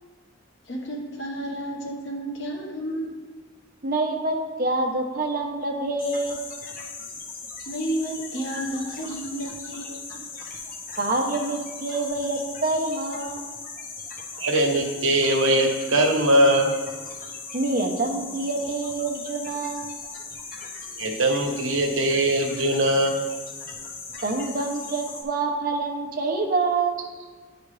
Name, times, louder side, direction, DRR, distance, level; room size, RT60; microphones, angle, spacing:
voice 1, 0.7-3.1 7.7-10.2, right 1 dB, 65° left, -1 dB, 1.4 m, -31 dB
voice 2, 3.8-6.4 11.0-13.5 17.5-20.0 24.2-27.0, right 3 dB, 45° right, 2 dB, 0.9 m, -26 dB
sound 1, 6.0-25.2, left 4 dB, 45° left, 1.0 m, -38 dB
voice 3, 14.4-16.7 21.0-23.2, right 1 dB, 75° right, 1 dB, 1.1 m, -21 dB
10.0 x 5.0 x 3.3 m, 1.5 s
head